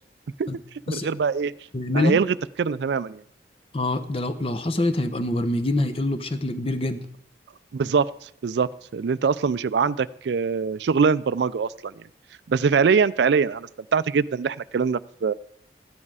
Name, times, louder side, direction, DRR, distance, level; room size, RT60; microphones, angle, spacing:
voice 1, 0.9-1.5 1.9-3.2 7.7-12.1 12.5-15.3, right 5 dB, 70° right, 17 dB, 0.4 m, -23 dB
voice 2, 1.7-2.2 3.7-7.1, left 2 dB, 30° left, 9 dB, 0.8 m, -25 dB
13.5 x 9.7 x 4.8 m, 0.67 s
head